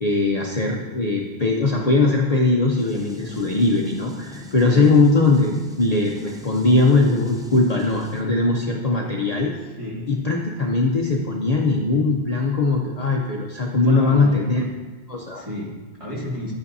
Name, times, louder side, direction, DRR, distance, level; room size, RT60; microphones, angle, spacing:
voice 1, 0.0-9.5 10.1-14.6 15.1-15.4, left 3 dB, 40° left, -1 dB, 0.7 m, -20 dB
sound 1, 2.8-8.2, left 1 dB, 5° right, 0.4 m, -42 dB
voice 2, 9.6-10.2 13.8-14.7 15.3-16.5, equal, 30° right, -5 dB, 2.1 m, -32 dB
11.0 x 8.5 x 2.7 m, 1.3 s
omnidirectional pair, 1.2 m